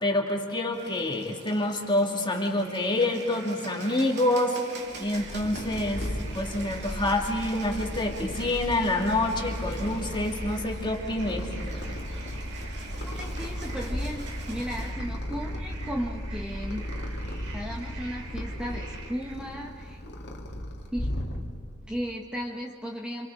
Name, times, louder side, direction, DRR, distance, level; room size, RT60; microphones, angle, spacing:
voice 1, 0.0-4.6 5.0-6.1 6.3-11.5, left 1 dB, 20° left, 1 dB, 2.5 m, -27 dB
Bird, 0.7-14.9, right 3 dB, 50° right, 2.8 m, -45 dB
sound 1, 2.6-19.4, right 4 dB, 80° right, 3.5 m, -47 dB
Purr, 4.9-21.8, equal, 50° left, 2.2 m, -35 dB
voice 2, 13.0-16.9 17.5-20.0 20.9-21.1 21.8-23.3, equal, 5° right, -1 dB, 1.3 m, -35 dB
28.0 x 26.5 x 4.9 m, 2.2 s
head